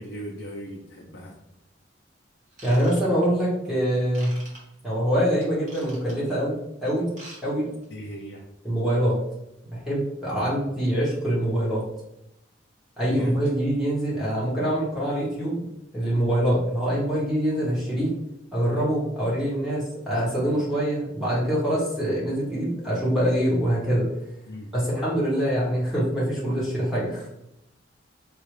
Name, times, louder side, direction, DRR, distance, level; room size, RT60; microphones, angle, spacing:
voice 1, 0.0-1.4 7.9-8.4 13.0-13.4 24.5-24.8, equal, 70° left, -2 dB, 0.6 m, -38 dB
Ratchet pawl / Tools, 2.5-3.5 4.1-4.6 5.4-6.3 7.0-7.4 7.7-7.9 8.4-8.5, right 2 dB, 40° right, 1.1 m, -45 dB
voice 2, 2.6-4.3 4.8-7.1 7.4-7.7 8.6-9.2 9.7-11.8 13.0-15.6 15.9-18.1 18.5-24.1 24.7-27.3, equal, ahead, -8 dB, 1.1 m, -24 dB
4.7 x 2.4 x 3.2 m, 0.84 s
head